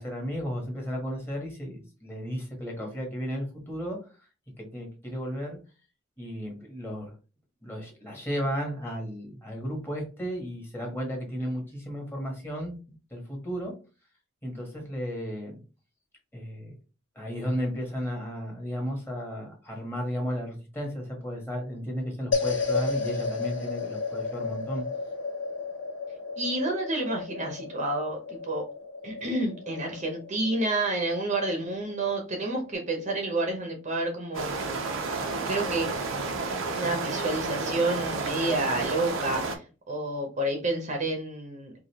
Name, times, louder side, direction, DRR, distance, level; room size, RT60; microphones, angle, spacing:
voice 1, 0.0-4.0 4.6-5.6 6.2-7.1 7.6-13.7 14.4-15.6 16.3-16.7 17.1-24.8, equal, 10° left, -1 dB, 1.3 m, -34 dB
sound 1, 22.3-32.7, left 4 dB, 65° left, 1.5 m, -33 dB
voice 2, 26.4-28.7 29.0-34.6 35.5-35.9 36.7-41.7, right 2 dB, 35° right, 2 dB, 0.9 m, -29 dB
sound 2, 34.3-39.6, right 3 dB, 75° right, 0.8 m, -31 dB
4.9 x 2.5 x 2.9 m, 0.33 s
head